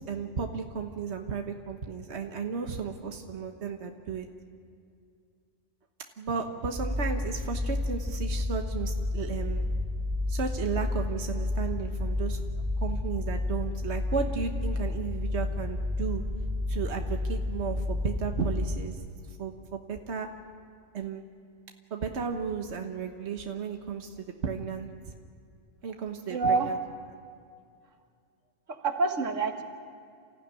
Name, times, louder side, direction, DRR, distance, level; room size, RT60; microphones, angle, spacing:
voice 1, 0.0-4.3 6.2-9.6 10.3-12.4 12.8-16.2 16.7-19.0 19.4-20.3 20.9-21.2 21.9-24.9 25.8-26.8, right 5 dB, 65° right, 4 dB, 1.5 m, -34 dB
sound 1, 6.8-18.9, left 2 dB, 15° right, 1.3 m, -31 dB
voice 2, 26.3-26.7 28.7-29.6, right 4 dB, 85° right, 5 dB, 1.9 m, -27 dB
29.0 x 15.0 x 9.7 m, 2.4 s
omnidirectional pair, 1.3 m